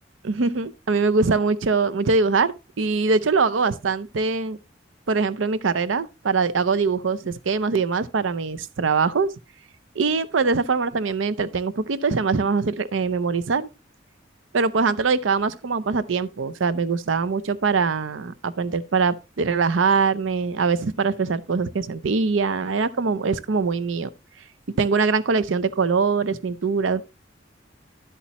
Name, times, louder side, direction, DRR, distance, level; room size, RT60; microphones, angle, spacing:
voice 1, 0.2-4.6 5.1-9.3 10.0-13.7 14.5-24.1 24.8-27.0, right 4 dB, 85° right, 0.6 m, -23 dB
11.5 x 8.3 x 3.0 m
head